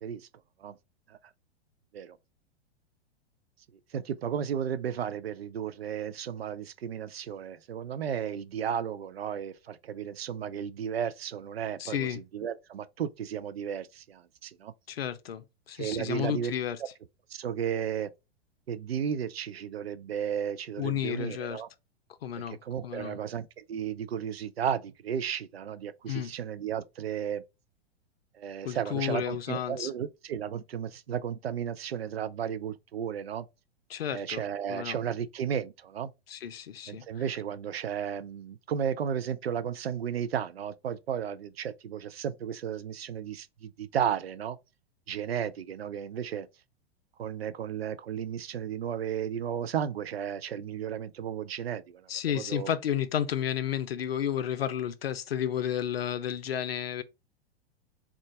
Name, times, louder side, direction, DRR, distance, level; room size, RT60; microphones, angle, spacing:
voice 1, 3.9-14.7 15.7-16.5 16.8-16.9 17.3-18.1 18.7-21.7 22.5-27.4 28.3-33.5 34.1-36.1 36.9-44.6 45.1-46.5 47.2-52.7, right 8 dB, 70° right, 0.5 m, -34 dB
voice 2, 11.8-12.2 14.9-16.8 20.8-21.6 22.2-22.6 22.8-23.2 26.1-26.3 28.6-29.9 33.9-34.4 34.7-35.0 36.3-37.0 52.1-57.0, left 10 dB, 70° left, 0.5 m, -32 dB
3.7 x 2.4 x 3.4 m
figure-of-eight pair, 100°, 32 cm